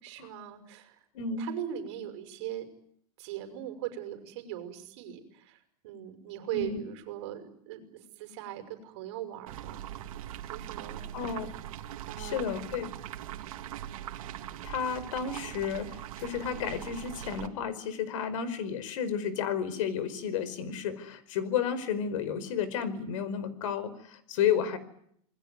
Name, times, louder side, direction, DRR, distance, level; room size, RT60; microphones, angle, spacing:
voice 1, 0.0-1.0 1.4-2.7 3.2-9.9 10.5-11.0 12.1-12.5, right 11 dB, 45° right, 8 dB, 6.0 m, -40 dB
voice 2, 1.1-1.5 6.5-6.8 11.1-11.5 12.2-12.9 14.6-24.8, left 7 dB, 55° left, 14 dB, 4.9 m, -32 dB
sound 1, 9.5-17.5, right 12 dB, 60° right, 3.1 m, -41 dB
27.5 x 21.0 x 9.6 m, 0.71 s
supercardioid pair, 165°, 20 cm